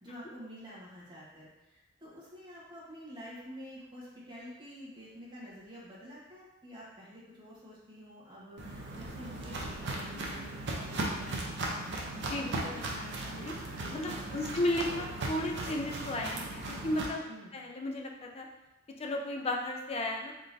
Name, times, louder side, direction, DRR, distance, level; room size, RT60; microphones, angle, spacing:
voice 1, 0.0-11.5 14.3-14.6 17.3-17.5, equal, 25° right, -8 dB, 1.3 m, -49 dB
Walk footsteps, 8.6-17.1, right 2 dB, 60° right, 0.7 m, -37 dB
voice 2, 12.3-13.5 13.9-17.3 17.5-18.5 19.0-20.3, left 1 dB, 30° left, 1 dB, 0.5 m, -34 dB
3.8 x 3.7 x 2.7 m, 0.95 s
head